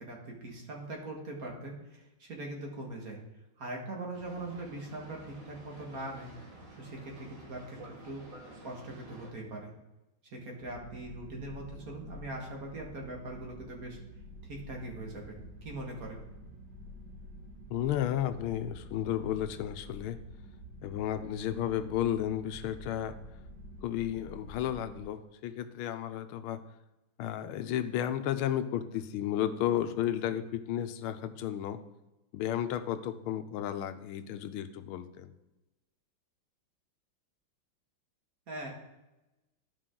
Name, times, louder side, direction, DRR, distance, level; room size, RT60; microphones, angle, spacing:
voice 1, 0.0-3.2 3.6-6.3 6.8-7.8 8.0-8.2 8.6-9.7 10.2-14.0 14.4-16.2 38.5-38.7, right 2 dB, 45° right, 0 dB, 1.9 m, -41 dB
Boat Water vehicle, 4.1-9.3, right 1 dB, 90° right, 3.0 m, -51 dB
sound 1, 10.6-25.0, equal, 60° right, 1.8 m, -49 dB
voice 2, 17.7-20.2 20.8-23.2 23.8-26.6 27.2-31.8 32.3-35.3, left 11 dB, 85° left, 10 dB, 1.5 m, -33 dB
13.0 x 5.1 x 3.8 m, 1.0 s
omnidirectional pair, 2.2 m